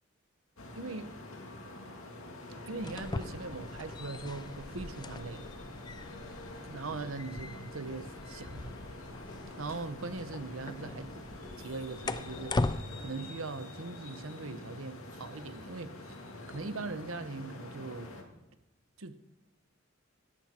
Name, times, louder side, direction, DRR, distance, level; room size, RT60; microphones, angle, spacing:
sound 1, 0.6-18.2, left 2 dB, 85° left, 2.3 m, -46 dB
voice 1, 0.7-1.1 2.7-5.5 6.6-8.8 9.6-11.1 11.6-12.6 13.0-15.9 16.5-18.1 19.0-19.2, right 3 dB, 70° right, 11 dB, 1.0 m, -40 dB
sound 2, 2.7-12.8, left 2 dB, 20° left, 0.5 m, -40 dB
18.0 x 12.5 x 4.4 m, 1.0 s
head